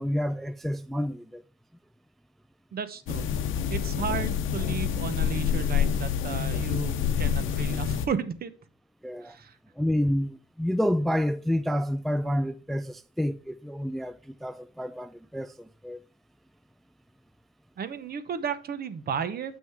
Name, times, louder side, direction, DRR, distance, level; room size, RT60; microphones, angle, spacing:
voice 1, 0.0-1.4 9.0-9.4 9.8-16.0, equal, ahead, 0.3 m, -29 dB
voice 2, 2.7-3.3 3.7-8.5 9.2-9.6 17.8-19.6, right 7 dB, 50° right, 0.9 m, -33 dB
sound 1, 3.1-8.1, left 8 dB, 85° left, 0.8 m, -27 dB
7.4 x 6.0 x 3.5 m
cardioid pair, 90°, 20 cm